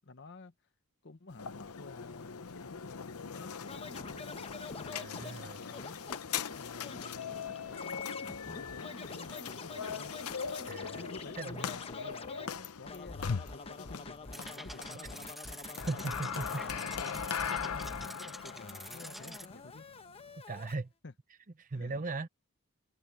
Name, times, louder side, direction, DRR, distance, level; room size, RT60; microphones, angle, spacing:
voice 1, 0.0-0.5 1.0-4.3 4.7-6.1 6.6-10.1 11.0-19.9 21.0-21.1 21.7-22.0, left 3 dB, 55° left, 1.0 m, -51 dB
sound 1, 1.3-20.4, left 7 dB, 90° left, 0.8 m, -40 dB
Scratching (performance technique), 3.7-12.5 12.9-18.1 18.4-20.7, left 3 dB, 25° left, 1.0 m, -47 dB
voice 2, 5.0-5.6 10.7-11.0 11.4-11.7 15.9-16.5 20.5-20.9 21.6-22.3, right 3 dB, 40° right, 0.7 m, -38 dB
sound 2, 14.3-19.5, equal, ahead, 1.2 m, -47 dB
head